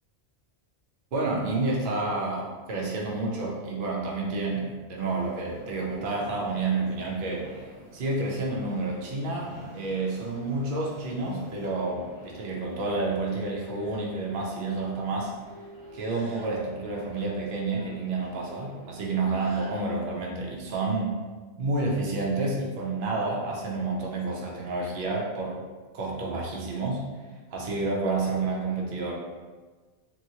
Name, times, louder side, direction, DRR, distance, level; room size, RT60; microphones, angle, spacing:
voice 1, 1.1-15.3 15.9-21.2 21.6-25.6 25.9-27.0 27.5-29.2, right 3 dB, 60° right, -3 dB, 0.7 m, -29 dB
Subway metro underground, 4.9-20.2, right 1 dB, 75° right, 1.1 m, -49 dB
2.9 x 2.7 x 2.7 m, 1.4 s
omnidirectional pair, 1.1 m